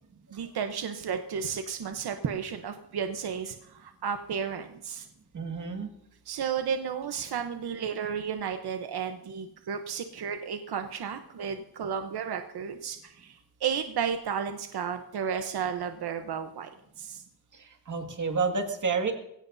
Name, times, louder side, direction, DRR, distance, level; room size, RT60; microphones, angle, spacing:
voice 1, 0.3-5.1 6.3-16.7 17.0-17.2, right 7 dB, 70° right, 6 dB, 1.0 m, -33 dB
voice 2, 5.3-5.9 17.5-19.1, right 4 dB, 50° right, 4 dB, 2.1 m, -30 dB
22.5 x 16.5 x 2.7 m, 0.78 s
wide cardioid pair, 155°, 39 cm